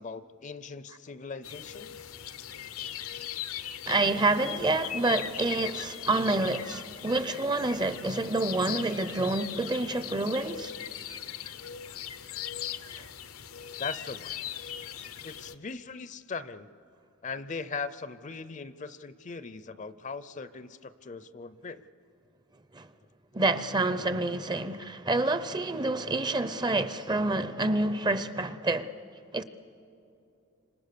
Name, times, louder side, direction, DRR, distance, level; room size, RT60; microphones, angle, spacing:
voice 1, 0.0-2.2 13.8-14.3 15.2-16.7 17.2-21.8, left 4 dB, 35° left, 0.5 m, -39 dB
sound 1, 1.4-15.5, left 10 dB, 90° left, 0.9 m, -39 dB
voice 2, 3.9-10.7 22.7-22.9 23.3-28.9 29.3-29.4, right 2 dB, 20° right, 0.6 m, -28 dB
29.5 x 26.0 x 6.8 m
head